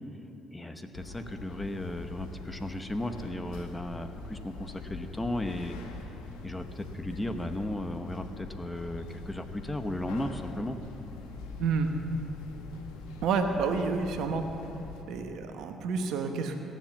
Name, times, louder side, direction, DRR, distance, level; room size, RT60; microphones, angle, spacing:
voice 1, 0.5-5.8 6.4-10.8, left 1 dB, 15° left, 8 dB, 1.1 m, -35 dB
sound 1, 0.9-15.0, left 3 dB, 85° left, 1.1 m, -44 dB
voice 2, 13.2-14.4 15.1-16.6, right 5 dB, 75° right, 5 dB, 1.1 m, -29 dB
17.0 x 7.4 x 7.2 m, 3.0 s
supercardioid pair, 60°, 0 cm